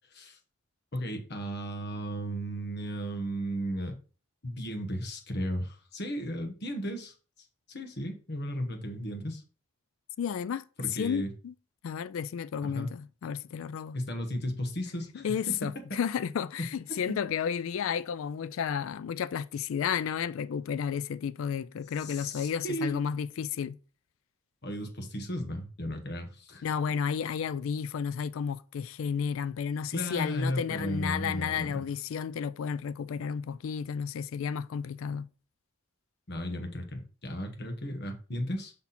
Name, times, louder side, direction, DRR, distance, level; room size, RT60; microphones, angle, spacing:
voice 1, 0.9-4.0 4.4-7.1 7.7-9.4 10.8-11.3 12.6-12.9 13.9-15.6 17.1-17.2 22.0-23.0 24.6-26.7 29.9-31.8 36.3-38.7, equal, 50° left, 1.2 m, -35 dB
voice 2, 10.2-10.6 10.9-11.5 11.8-14.0 15.1-23.8 26.6-35.3, left 7 dB, 70° left, 0.3 m, -32 dB
5.9 x 4.1 x 4.2 m
head